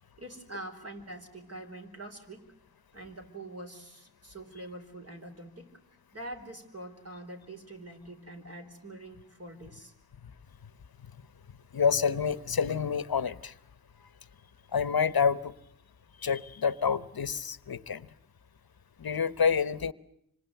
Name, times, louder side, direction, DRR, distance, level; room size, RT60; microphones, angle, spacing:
voice 1, 0.2-2.5 2.9-5.7 6.1-9.9, right 1 dB, 40° right, 4.6 m, -44 dB
voice 2, 11.7-13.5 14.7-15.5 16.2-18.1 19.0-19.9, left 6 dB, 75° left, 1.0 m, -28 dB
26.5 x 25.5 x 8.0 m
wide cardioid pair, 80°, 37 cm